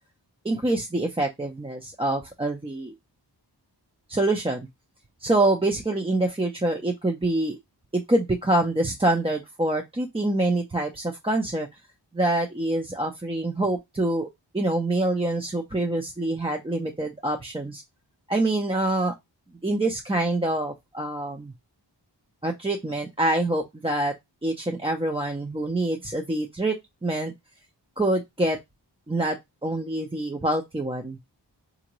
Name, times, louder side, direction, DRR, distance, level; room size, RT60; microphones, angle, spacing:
voice 1, 0.4-2.9 4.1-4.7 5.2-7.6 7.9-11.7 12.1-14.3 14.5-17.8 18.3-19.1 19.6-21.5 22.4-24.1 24.4-27.3 28.0-28.6 29.1-29.4 29.6-31.2, right 2 dB, 15° right, 0.5 m, -25 dB
3.7 x 2.6 x 3.0 m
wide cardioid pair, 55°, 43 cm